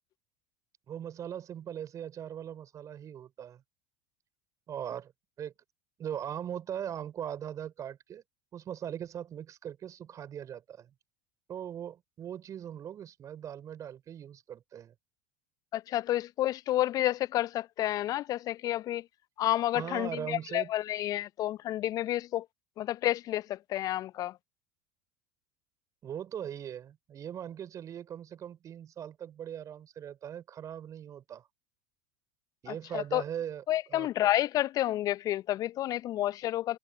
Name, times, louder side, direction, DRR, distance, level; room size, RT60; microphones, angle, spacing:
voice 1, 0.9-3.6 4.7-5.1 5.4-5.5 6.0-8.2 8.5-10.9 11.5-14.9 19.7-20.7 26.0-31.5 32.6-33.6 33.9-34.1, right 9 dB, 35° right, 4.3 m, -40 dB
voice 2, 15.7-19.1 19.4-22.5 22.8-24.4 32.7-33.2 33.7-36.8, left 14 dB, 40° left, 0.6 m, -30 dB
figure-of-eight pair, 75°, 9 cm